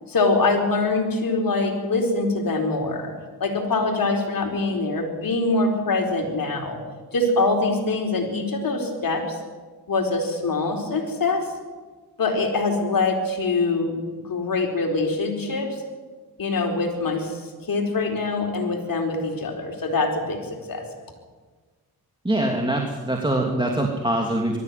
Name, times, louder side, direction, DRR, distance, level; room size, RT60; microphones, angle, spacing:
voice 1, 0.1-3.1 3.4-6.8 7.1-9.4 9.9-11.4 12.2-13.9 14.3-15.8 16.4-17.4 17.7-20.9, left 3 dB, 60° left, 3 dB, 4.4 m, -24 dB
voice 2, 22.2-24.6, right 1 dB, 10° right, 1 dB, 2.8 m, -23 dB
22.0 x 13.5 x 9.5 m, 1.4 s
cardioid pair, 75°, 38 cm